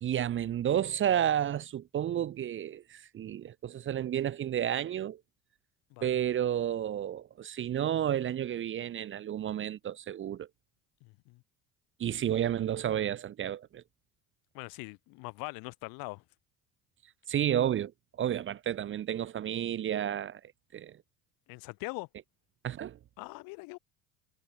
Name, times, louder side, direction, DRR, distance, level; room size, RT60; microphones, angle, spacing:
voice 1, 0.0-5.2 6.0-10.5 12.0-13.8 17.3-17.9 18.2-20.4 20.7-21.0 22.6-23.0, right 10 dB, 35° right, 0.6 m, -31 dB
voice 2, 11.0-11.4 14.5-16.2 21.5-22.1 23.2-23.8, left 26 dB, 75° left, 3.2 m, -42 dB
supercardioid pair, 80°, 35 cm